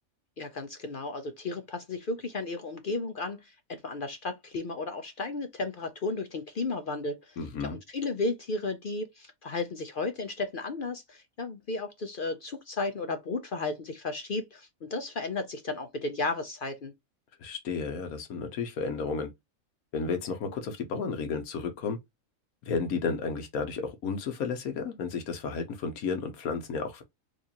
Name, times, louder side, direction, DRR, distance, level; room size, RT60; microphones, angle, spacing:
voice 1, 0.4-16.9, left 3 dB, 55° left, 0.6 m, -34 dB
voice 2, 7.4-7.8 17.4-19.3 19.9-22.0 22.6-27.0, left 5 dB, 80° left, 1.4 m, -32 dB
4.8 x 2.6 x 2.8 m
omnidirectional pair, 1.5 m